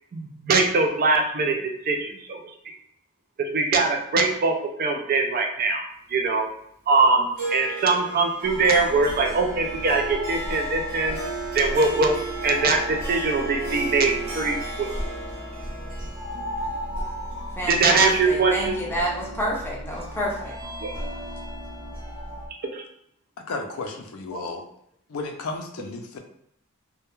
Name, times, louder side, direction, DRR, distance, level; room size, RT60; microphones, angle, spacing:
voice 1, 0.1-2.4 3.4-5.8 6.1-6.5 6.9-11.2 11.5-12.2 12.4-14.9 17.7-18.8 20.8-20.9 22.7-22.8 24.3-24.4, right 3 dB, 40° right, 3 dB, 0.3 m, -22 dB
Harp, 7.4-17.9, right 3 dB, 70° right, 0.8 m, -35 dB
sound 1, 8.4-22.5, equal, 25° right, 0.7 m, -35 dB
voice 2, 17.6-20.5, right 1 dB, 10° left, -4 dB, 0.5 m, -28 dB
voice 3, 23.5-24.6 25.1-26.2, left 3 dB, 75° left, 3 dB, 0.4 m, -33 dB
2.2 x 2.1 x 2.9 m, 0.71 s
head